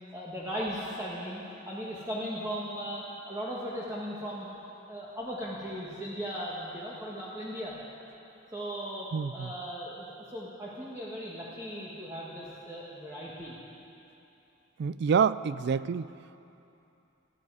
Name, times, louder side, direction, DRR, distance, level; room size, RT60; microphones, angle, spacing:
voice 1, 0.1-4.5 4.9-7.8 8.5-9.1 9.3-13.6, equal, 15° right, -7 dB, 1.6 m, -37 dB
voice 2, 9.1-9.5 14.8-16.1, right 6 dB, 55° right, 17 dB, 0.3 m, -27 dB
20.0 x 13.5 x 4.8 m, 2.8 s
head